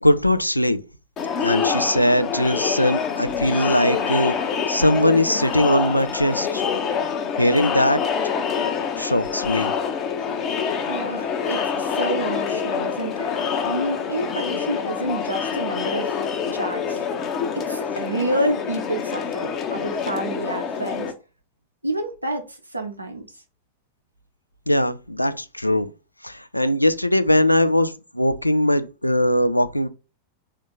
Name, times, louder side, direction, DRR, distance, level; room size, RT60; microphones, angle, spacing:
voice 1, 0.0-0.8 1.4-4.3 4.7-6.6 7.4-8.0 9.0-9.7 24.7-25.9 26.2-29.9, left 1 dB, 85° left, 0.3 m, -20 dB
Crowd, 1.2-21.1, left 6 dB, 30° left, 0.7 m, -26 dB
voice 2, 10.9-13.3 13.6-16.3 16.5-17.0 17.5-21.1 21.8-23.2, right 1 dB, 85° right, 0.8 m, -28 dB
3.5 x 2.8 x 3.7 m
figure-of-eight pair, 90°, 0 cm